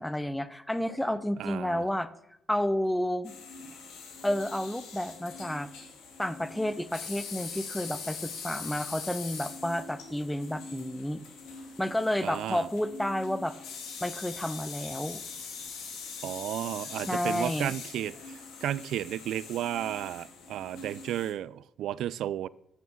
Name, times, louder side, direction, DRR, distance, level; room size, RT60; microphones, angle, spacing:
voice 1, 0.0-2.1 2.5-3.4 4.2-5.7 6.2-11.2 11.8-13.5 14.0-15.2 17.1-17.7, left 1 dB, 5° left, 0.7 m, -31 dB
voice 2, 1.4-1.8 12.2-12.7 16.2-22.5, right 12 dB, 80° right, 0.3 m, -33 dB
sound 1, 3.2-21.3, left 5 dB, 90° left, 2.0 m, -42 dB
9.4 x 6.1 x 7.1 m
cardioid pair, 90°, 0 cm